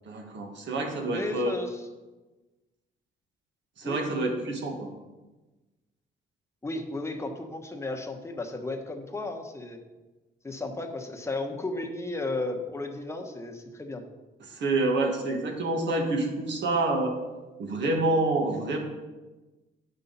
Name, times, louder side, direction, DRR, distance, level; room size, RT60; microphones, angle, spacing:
voice 1, 0.0-1.5 3.8-4.9 14.4-17.1 17.6-18.8, right 2 dB, 65° right, 2 dB, 1.7 m, -27 dB
voice 2, 1.1-1.9 3.8-4.0 6.6-9.8 10.4-14.0, left 2 dB, 15° left, 3 dB, 1.1 m, -34 dB
9.1 x 5.6 x 4.0 m, 1.2 s
cardioid pair, 90°, 20 cm